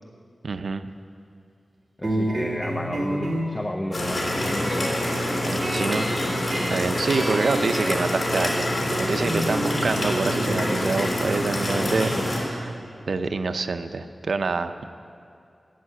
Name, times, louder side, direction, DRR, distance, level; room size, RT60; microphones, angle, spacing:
voice 1, 0.4-0.9 5.4-6.1 6.7-12.8 13.1-14.8, right 4 dB, 75° right, 9 dB, 0.6 m, -27 dB
voice 2, 2.0-4.9 7.2-7.3 11.7-12.3, left 1 dB, 20° left, 4 dB, 0.7 m, -33 dB
sound 1, 2.0-13.1, right 1 dB, 45° right, 2.0 m, -32 dB
sound 2, 3.9-12.4, left 1 dB, 55° left, 3.0 m, -26 dB
12.5 x 9.2 x 7.5 m, 2.4 s
wide cardioid pair, 85°, 0 cm